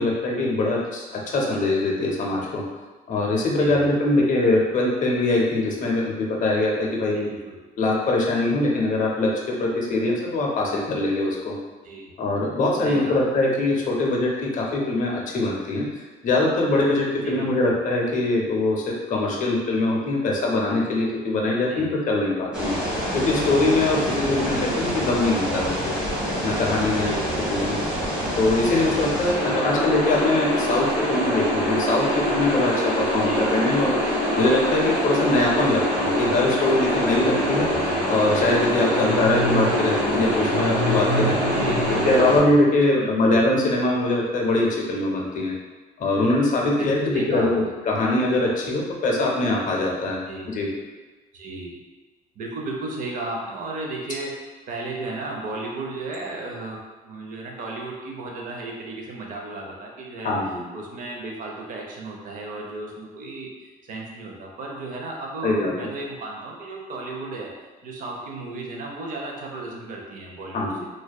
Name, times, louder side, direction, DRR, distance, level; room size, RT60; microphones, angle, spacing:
voice 1, 0.0-2.6 3.1-7.3 7.8-11.6 12.2-15.9 16.2-22.8 23.1-25.9 26.4-27.1 27.5-27.8 28.4-34.0 34.4-37.7 38.1-41.4 42.0-45.5 46.0-50.2 50.5-50.7 60.2-60.6 65.4-65.7 70.5-70.8, left 2 dB, 50° left, -1 dB, 0.5 m, -22 dB
voice 2, 3.6-4.3 7.1-7.6 11.8-12.1 12.8-13.2 17.2-17.8 21.7-21.9 24.1-24.6 26.9-27.8 29.3-29.9 33.2-33.5 39.1-39.6 41.5-42.6 43.0-43.5 46.8-47.7 50.3-50.5 51.3-51.8 52.4-56.8 57.0-67.5 67.8-70.9, right 2 dB, 55° right, 0 dB, 0.5 m, -35 dB
sound 1, 22.5-42.4, equal, 5° right, 0.9 m, -24 dB
2.5 x 2.2 x 2.2 m, 1.3 s
cardioid pair, 110°, 17 cm